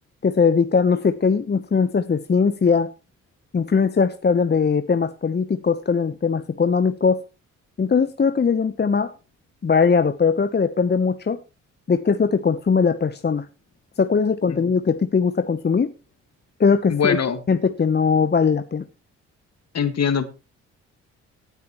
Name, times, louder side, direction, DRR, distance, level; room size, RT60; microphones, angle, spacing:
voice 1, 0.2-2.9 3.5-7.2 7.8-9.1 9.6-11.4 11.9-13.5 14.0-15.9 16.6-17.2 17.5-18.8, left 5 dB, 30° left, 0.9 m, -20 dB
voice 2, 16.9-17.4 19.7-20.3, left 6 dB, 50° left, 2.0 m, -22 dB
18.0 x 9.2 x 3.1 m
hypercardioid pair, 50°, 33 cm